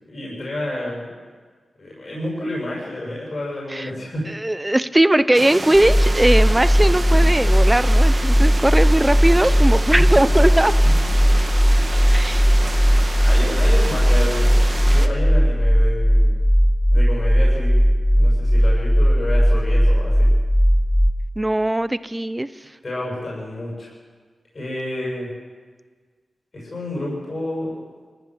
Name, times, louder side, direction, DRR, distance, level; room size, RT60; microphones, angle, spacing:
voice 1, 0.1-1.2 1.8-4.2 10.4-10.5 10.8-11.3 12.2-12.3 13.0-16.3 16.9-17.9 18.1-20.3 22.6-23.9 24.5-25.3 26.5-27.8, left 1 dB, 35° left, -4 dB, 7.2 m, -30 dB
voice 2, 4.3-10.7 12.1-12.5 21.4-22.5, right 1 dB, 10° right, 15 dB, 0.6 m, -19 dB
sound 1, 5.3-15.1, right 2 dB, 30° right, 1.4 m, -30 dB
sound 2, 5.7-21.1, equal, 15° left, 1.1 m, -16 dB
26.0 x 15.0 x 7.8 m, 1.5 s
wide cardioid pair, 145°, 0 cm